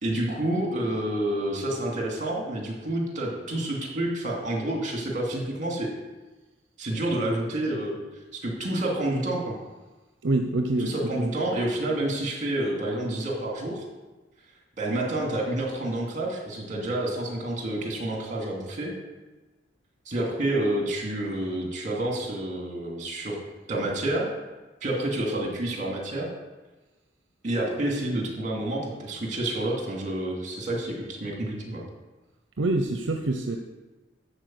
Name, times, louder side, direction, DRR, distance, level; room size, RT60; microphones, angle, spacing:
voice 1, 0.0-5.9 6.8-8.0 8.3-9.6 10.8-13.8 14.8-18.9 20.1-23.4 23.7-24.3 24.8-26.3 27.4-31.8, right 1 dB, 40° right, -1 dB, 2.6 m, -29 dB
voice 2, 10.2-11.3 32.6-33.6, right 2 dB, 70° right, 4 dB, 0.7 m, -26 dB
11.5 x 4.6 x 7.6 m, 1.2 s
head